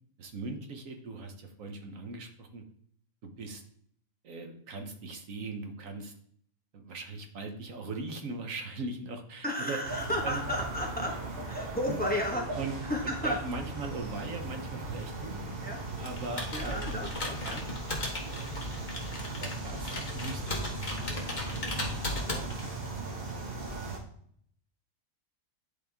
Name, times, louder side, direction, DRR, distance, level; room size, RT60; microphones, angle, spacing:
voice 1, 0.2-2.6 3.2-3.6 4.2-6.1 6.7-9.8 10.2-10.4 11.9-12.0 12.6-12.8 13.0-15.4 16.0-17.1 19.3-21.8 22.0-22.9 23.3-23.4, right 3 dB, 80° right, 5 dB, 1.3 m, -40 dB
voice 2, 9.4-11.1 11.5-12.6 12.9-13.4 15.6-15.8 16.5-17.6, left 1 dB, 5° left, 0 dB, 1.2 m, -33 dB
sound 1, 9.8-24.0, right 2 dB, 45° right, 1.5 m, -38 dB
Computer keyboard, 16.0-22.9, left 2 dB, 35° left, 1.4 m, -37 dB
10.0 x 4.1 x 3.5 m, 0.64 s
omnidirectional pair, 1.4 m